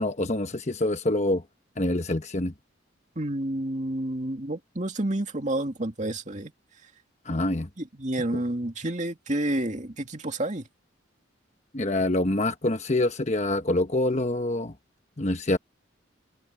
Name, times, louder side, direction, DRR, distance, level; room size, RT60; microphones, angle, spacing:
voice 1, 0.0-1.4 1.8-2.5 7.2-7.7 8.3-8.4 11.7-14.7 15.2-15.6, left 1 dB, 35° left, 1.1 m, -26 dB
voice 2, 3.2-6.5 7.8-10.6, right 1 dB, 35° right, 2.4 m, -29 dB
head